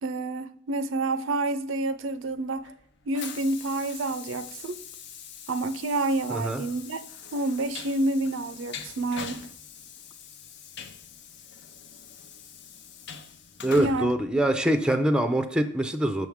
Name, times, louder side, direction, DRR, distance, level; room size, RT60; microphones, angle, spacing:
voice 1, 0.0-2.7 3.1-4.8 5.5-7.0 7.3-9.4 13.8-14.4, right 2 dB, 80° right, 12 dB, 0.5 m, -28 dB
Train, 2.0-15.2, left 7 dB, 60° left, 0.7 m, -43 dB
voice 2, 6.3-6.7 13.6-16.3, right 1 dB, 5° right, 8 dB, 0.5 m, -24 dB
6.3 x 6.2 x 3.5 m, 0.65 s
head